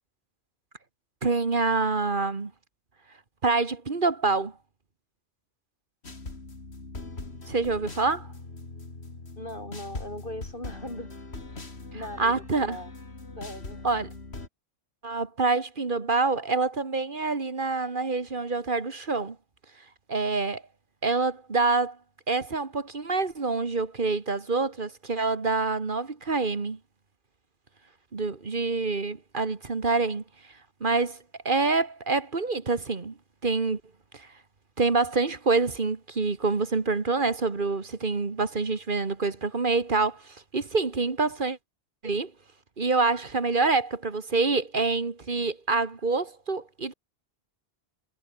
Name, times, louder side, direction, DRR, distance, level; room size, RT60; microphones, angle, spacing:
voice 1, 1.2-2.5 3.4-4.5 7.5-8.3 12.2-12.8 13.8-14.1 15.0-19.4 20.1-20.6 21.0-22.0 22.3-26.8 28.1-30.2 30.8-33.1 33.4-33.8 34.1-34.3 34.8-41.6 42.0-42.3 42.8-46.9, right 3 dB, 50° right, 1.9 m, -26 dB
sound 1, 6.0-14.5, left 3 dB, 75° left, 3.5 m, -41 dB
voice 2, 9.4-11.1 11.5-12.9 13.4-13.8, left 1 dB, 55° left, 8.4 m, -40 dB
omnidirectional pair, 1.1 m